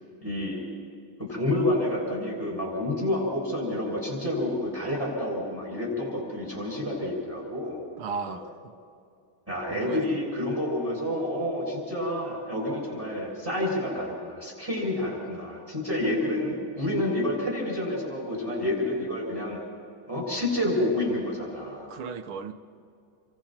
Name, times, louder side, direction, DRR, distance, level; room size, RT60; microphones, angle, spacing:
voice 1, 0.2-0.6 1.2-7.8 8.3-8.4 9.5-19.6 20.1-21.9, left 1 dB, 5° right, -3 dB, 6.5 m, -29 dB
voice 2, 8.0-8.7 9.7-10.2 21.9-22.5, right 5 dB, 80° right, 9 dB, 1.8 m, -36 dB
28.5 x 23.5 x 4.4 m, 2.5 s
omnidirectional pair, 2.3 m